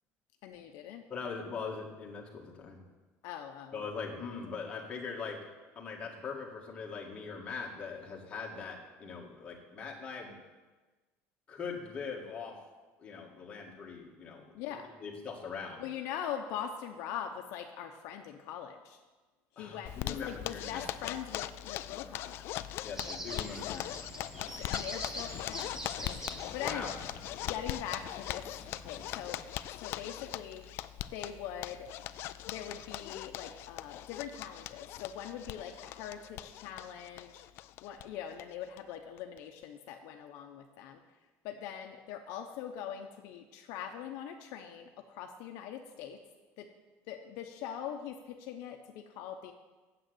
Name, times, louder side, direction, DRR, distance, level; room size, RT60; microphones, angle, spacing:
voice 1, 0.4-1.0 3.2-3.9 14.5-14.9 15.8-19.0 19.6-22.3 23.4-24.0 24.4-27.0 27.5-28.5 28.8-29.5 29.8-30.6 31.1-31.9 32.5-37.4 37.8-41.0 41.4-46.2 46.6-46.7 47.1-49.5, left 9 dB, 65° left, 4 dB, 0.9 m, -42 dB
voice 2, 1.1-2.8 3.7-5.4 5.8-10.4 11.5-12.6 13.0-14.5 15.0-15.8 19.6-20.9 22.8-23.9 26.6-26.9, left 5 dB, 20° left, -2 dB, 1.8 m, -41 dB
Zipper (clothing), 19.9-38.0 38.4-38.5 38.8-38.9 39.2-39.6, left 14 dB, 50° left, 0.4 m, -41 dB
sound 1, 22.9-29.5, right 1 dB, 10° right, 0.8 m, -45 dB
9.3 x 7.8 x 7.9 m, 1.2 s
cardioid pair, 180°, 5 cm